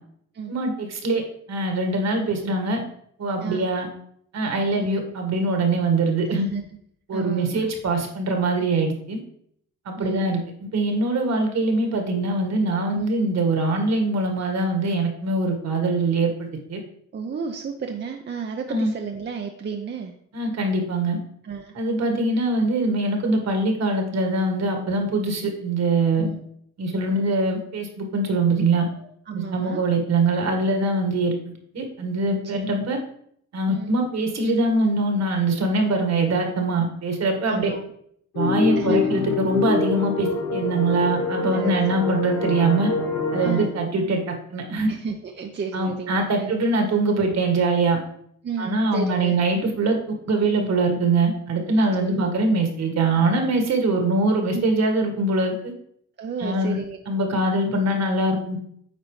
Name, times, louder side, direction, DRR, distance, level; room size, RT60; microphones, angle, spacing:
voice 1, 0.5-1.2 1.5-2.8 3.2-3.9 4.3-6.5 7.1-9.2 9.8-10.4 10.7-16.8 18.7-18.9 20.3-21.2 21.7-26.3 26.8-28.9 29.3-31.3 31.7-33.0 33.5-37.7 38.3-42.9 43.3-44.9 45.7-48.0 48.6-50.0 50.3-55.7 56.4-56.8 57.1-58.6, right 2 dB, 60° right, 4 dB, 1.7 m, -23 dB
voice 2, 6.3-6.7 7.1-7.7 10.0-10.3 12.9-13.1 17.1-20.1 21.4-21.7 26.2-26.4 28.9-29.8 32.4-32.6 33.7-33.9 37.5-37.8 38.8-39.1 41.5-41.7 43.4-43.7 44.9-46.5 48.4-49.4 52.0-52.2 54.5-54.6 56.2-57.0, right 5 dB, 35° right, 3 dB, 0.7 m, -32 dB
sound 1, 38.3-43.7, left 4 dB, 90° left, 1.4 m, -25 dB
9.2 x 4.2 x 3.2 m, 0.67 s
cardioid pair, 90°, 30 cm